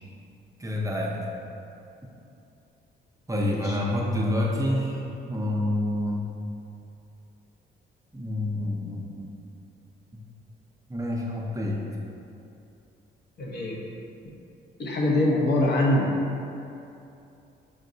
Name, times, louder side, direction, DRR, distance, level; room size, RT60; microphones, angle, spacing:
voice 1, 0.6-1.2 3.3-5.0 5.3-6.2 8.1-9.3 10.1-10.2 10.9-11.8, left 1 dB, 15° right, -3 dB, 0.5 m, -27 dB
voice 2, 3.4-3.8 13.4-13.8 14.8-16.1, left 1 dB, 55° left, -2 dB, 0.7 m, -24 dB
3.9 x 3.7 x 2.6 m, 2.8 s
cardioid pair, 90°, 20 cm